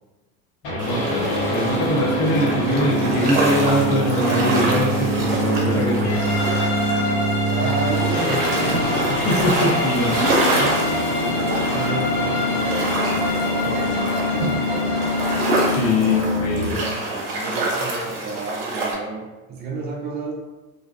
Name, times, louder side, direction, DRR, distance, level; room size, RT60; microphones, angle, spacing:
sound 1, 0.6-16.6, equal, 65° left, 1.0 m, -24 dB
voice 1, 0.6-6.4 9.1-10.8 15.7-16.9, left 1 dB, 35° left, -1 dB, 0.7 m, -23 dB
sound 2, 0.8-18.9, right 2 dB, 60° right, 0.8 m, -27 dB
sound 3, 6.0-15.5, left 1 dB, 85° left, 0.7 m, -28 dB
voice 2, 7.5-8.8 11.1-15.0 15.9-20.3, right 3 dB, 20° right, -2 dB, 0.6 m, -32 dB
2.6 x 2.2 x 2.2 m, 1.1 s
hypercardioid pair, 75°, 44 cm